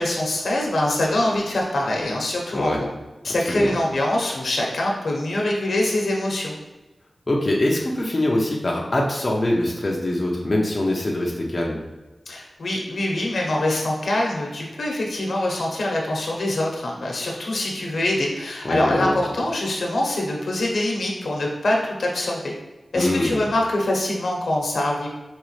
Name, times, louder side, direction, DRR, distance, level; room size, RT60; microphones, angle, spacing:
voice 1, 0.0-2.9 3.2-6.5 12.3-22.5 22.9-25.1, left 1 dB, 75° left, -1 dB, 1.0 m, -24 dB
voice 2, 7.3-11.8 18.6-19.1 23.0-23.4, left 1 dB, 35° left, -2 dB, 0.7 m, -23 dB
5.1 x 3.3 x 3.2 m, 1.1 s
wide cardioid pair, 105°, 0 cm